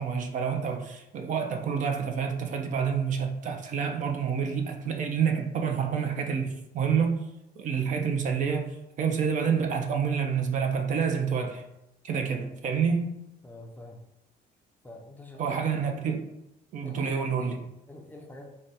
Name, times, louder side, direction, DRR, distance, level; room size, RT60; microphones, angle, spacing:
voice 1, 0.0-7.2 7.6-11.7 12.0-13.2 15.4-16.3 16.7-17.7, right 6 dB, 45° right, 0.5 m, -28 dB
voice 2, 13.4-14.1 14.8-15.6 16.8-18.5, left 1 dB, 10° left, 0.5 m, -47 dB
4.8 x 2.2 x 4.1 m
cardioid pair, 155°, 18 cm